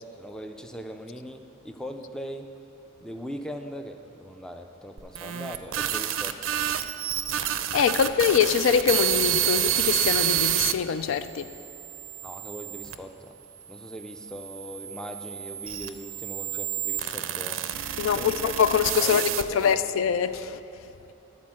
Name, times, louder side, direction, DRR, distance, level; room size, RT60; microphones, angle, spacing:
voice 1, 0.0-2.5 3.0-6.5 12.2-13.3 13.7-17.6 18.1-18.4 19.0-19.8, equal, 5° left, 0.3 m, -40 dB
sound 1, 5.0-10.7 11.4-12.9 13.7-19.7, right 11 dB, 85° right, 0.4 m, -29 dB
voice 2, 7.7-11.5 18.0-20.6, left 7 dB, 85° left, 0.4 m, -24 dB
11.0 x 4.3 x 7.4 m
head